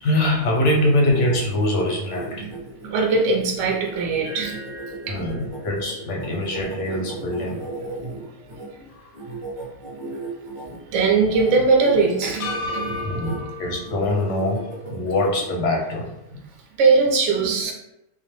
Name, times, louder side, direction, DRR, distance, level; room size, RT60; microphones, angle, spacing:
voice 1, 0.0-2.5 5.1-7.6 8.9-9.1 13.0-16.1, left 1 dB, 65° left, -2 dB, 0.8 m, -23 dB
sound 1, 0.8-8.7 9.1-10.8 11.2-11.5 11.8-12.1 12.4-13.4 13.8-15.6, right 3 dB, 25° right, 0.7 m, -36 dB
voice 2, 2.8-5.3 6.6-6.7 7.8-8.3 8.7-8.9 9.2-9.4 9.9-10.2 10.5-13.2 16.3-16.4 16.7-17.7, right 4 dB, 65° right, 0 dB, 0.8 m, -22 dB
sound 2, 4.2-8.5 8.9-9.0 12.4-15.0, left 3 dB, 85° left, 1.1 m, -37 dB
2.6 x 2.0 x 3.0 m, 0.90 s
omnidirectional pair, 1.6 m